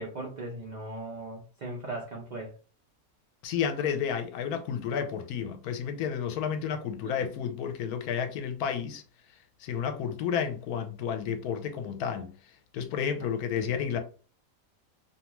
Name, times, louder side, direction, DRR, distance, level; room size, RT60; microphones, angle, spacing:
voice 1, 0.0-2.5 7.0-7.3, right 2 dB, 75° right, 0.4 m, -38 dB
voice 2, 3.4-9.0 9.6-12.3 12.7-14.0, left 7 dB, 85° left, 1.1 m, -31 dB
2.6 x 2.3 x 2.9 m
omnidirectional pair, 1.5 m